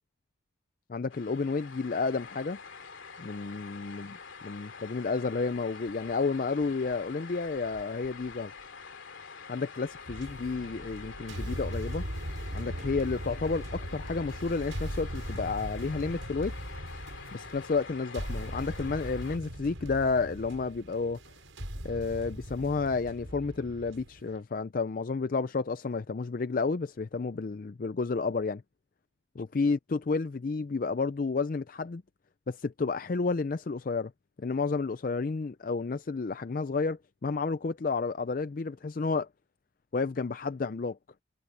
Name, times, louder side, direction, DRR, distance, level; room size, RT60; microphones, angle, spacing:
voice 1, 0.9-2.6 3.2-4.1 4.4-8.5 9.5-12.0 12.5-16.5 17.3-21.2 21.8-28.6 29.4-32.0 32.5-34.1 34.4-39.3 39.9-41.0, left 4 dB, 45° left, 0.4 m, -31 dB
sound 1, 1.1-19.4, left 5 dB, 80° left, 2.6 m, -46 dB
sound 2, 10.1-24.4, equal, 85° right, 7.2 m, -39 dB
head